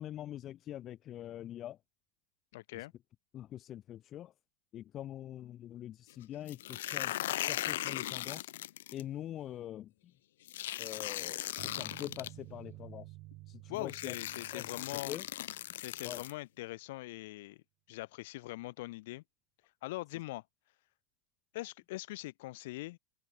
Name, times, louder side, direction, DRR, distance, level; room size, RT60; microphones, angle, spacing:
voice 1, 0.0-1.8 2.7-2.8 3.3-4.3 4.7-8.5 8.9-9.9 10.8-13.1 13.5-14.1 14.5-14.7 15.1-15.2 16.0-16.2, left 12 dB, 25° left, 0.6 m, -44 dB
voice 2, 2.5-2.9 13.7-15.2 15.7-19.2 19.8-20.4 21.5-23.0, left 19 dB, 60° left, 1.7 m, -42 dB
sound 1, 6.5-9.0 10.5-12.3 13.3-13.4 13.9-16.3, left 14 dB, 85° left, 0.6 m, -38 dB
sound 2, 11.6-15.8, right 21 dB, 40° right, 1.7 m, -52 dB
open air
supercardioid pair, 165°, 0 cm